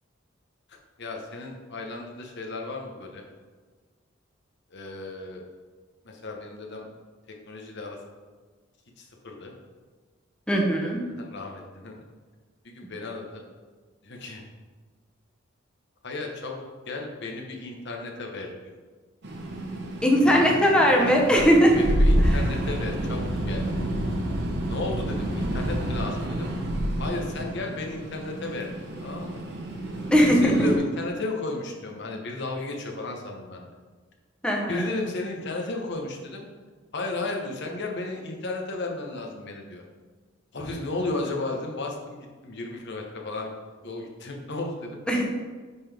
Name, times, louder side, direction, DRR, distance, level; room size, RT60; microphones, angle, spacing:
voice 1, 1.0-3.2 4.7-5.4 6.0-6.9 7.4-8.0 9.0-9.5 11.1-12.0 12.6-13.4 14.0-14.4 16.0-18.8 20.4-20.6 21.0-21.5 21.8-23.8 24.7-26.5 27.0-29.4 30.2-33.7 34.7-36.4 36.9-39.8 40.5-43.5 43.8-45.0, left 2 dB, 60° left, 1 dB, 1.1 m, -34 dB
voice 2, 10.5-11.0 20.0-21.7 30.1-30.7 34.4-34.8 45.1-45.2, equal, 5° left, -1 dB, 0.9 m, -19 dB
sound 1, 19.2-30.8, right 1 dB, 60° right, 1.0 m, -28 dB
9.5 x 3.9 x 3.5 m, 1.5 s
head